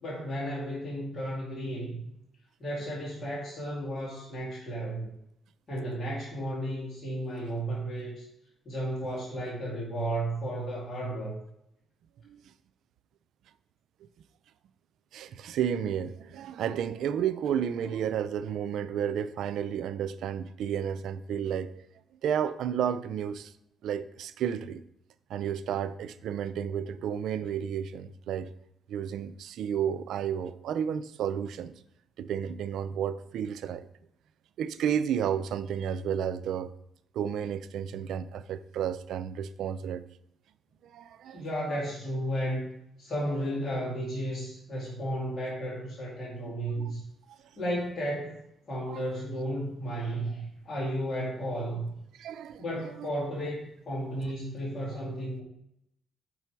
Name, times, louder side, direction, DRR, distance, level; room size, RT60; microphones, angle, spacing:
voice 1, 0.0-2.0 2.6-5.1 5.7-8.2 8.7-11.4 41.3-42.7 43.0-47.0 47.6-51.9 52.6-55.4, right 1 dB, 40° left, 2.2 m, -33 dB
voice 2, 15.1-21.8 22.2-23.5 23.8-24.8 25.3-28.5 28.9-31.7 32.2-33.9 34.6-36.7 37.1-40.0 40.8-41.4 46.8-46.9 48.9-49.1 52.2-52.6 53.0-53.1, right 8 dB, 75° right, 0.4 m, -32 dB
5.9 x 4.6 x 4.5 m
cardioid pair, 90°, 0 cm